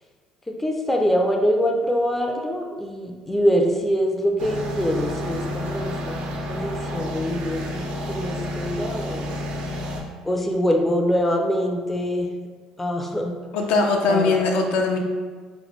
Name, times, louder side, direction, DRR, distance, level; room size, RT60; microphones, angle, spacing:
voice 1, 0.5-9.3 10.2-12.3 12.8-13.3 14.1-14.4, equal, 10° left, 1 dB, 0.4 m, -24 dB
sound 1, 4.4-10.0, left 1 dB, 65° right, 0.5 m, -30 dB
voice 2, 13.5-15.0, left 3 dB, 75° left, 2 dB, 0.4 m, -20 dB
3.0 x 2.2 x 3.1 m, 1.5 s
cardioid pair, 110°, 2 cm